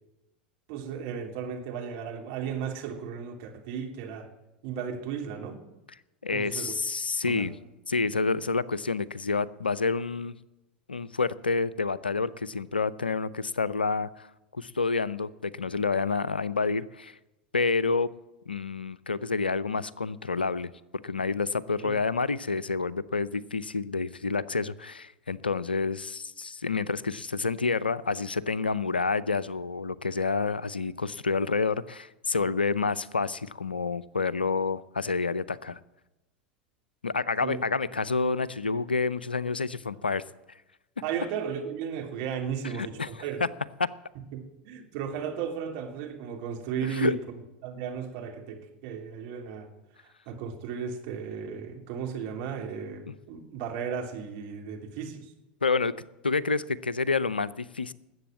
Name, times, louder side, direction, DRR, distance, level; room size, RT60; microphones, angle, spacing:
voice 1, 0.7-4.3 4.6-5.6 6.3-6.7 7.3-7.5 21.8-21.9 37.4-37.6 38.8-38.9 41.0-43.4 44.3-47.3 47.6-49.7 50.0-55.3, right 7 dB, 55° right, 2 dB, 3.2 m, -35 dB
voice 2, 6.2-7.5 7.9-10.4 10.9-14.3 14.5-17.2 17.5-18.1 18.5-20.7 21.0-35.8 37.0-40.2 42.8-43.1 46.9-47.2 55.6-55.9 56.2-57.9, left 4 dB, 90° left, 18 dB, 0.6 m, -28 dB
19.5 x 8.0 x 7.5 m, 0.97 s
figure-of-eight pair, 85°, 5 cm